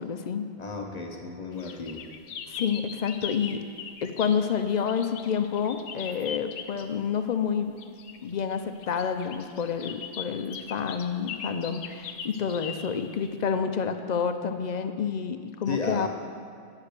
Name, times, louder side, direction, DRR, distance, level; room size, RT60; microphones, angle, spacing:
voice 1, 0.0-0.5 2.5-3.6 4.0-7.7 8.2-16.1, left 7 dB, 55° left, 8 dB, 0.5 m, -29 dB
voice 2, 0.6-2.0 15.7-16.1, left 4 dB, 40° left, 2 dB, 1.0 m, -33 dB
sound 1, 1.6-4.5 4.9-6.8 7.8-13.5, left 7 dB, 75° left, 0.9 m, -40 dB
9.8 x 5.8 x 6.6 m, 2.3 s
omnidirectional pair, 1.2 m